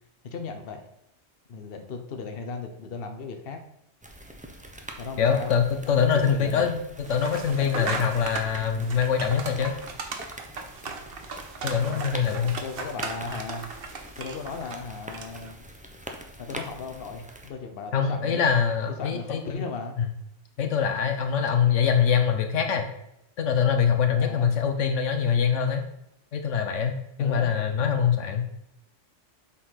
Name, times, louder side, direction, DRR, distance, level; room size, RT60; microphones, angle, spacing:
voice 1, 0.2-0.8 1.5-3.6 5.0-5.5 5.9-6.7 7.5-8.1 11.8-13.7 14.2-15.6 16.4-18.5 19.0-20.0 24.2-24.5 27.2-27.5, left 4 dB, 55° left, 6 dB, 1.1 m, -36 dB
sound 1, 4.0-17.5, right 1 dB, 10° right, 0.7 m, -44 dB
voice 2, 5.2-6.8 7.1-9.7 11.6-12.6 17.9-19.6 20.6-22.9 23.4-25.8 26.3-28.4, left 7 dB, 80° left, 6 dB, 1.2 m, -24 dB
sound 2, 7.0-15.5, right 4 dB, 55° right, 1.1 m, -37 dB
7.6 x 4.3 x 5.7 m, 0.81 s
omnidirectional pair, 1.3 m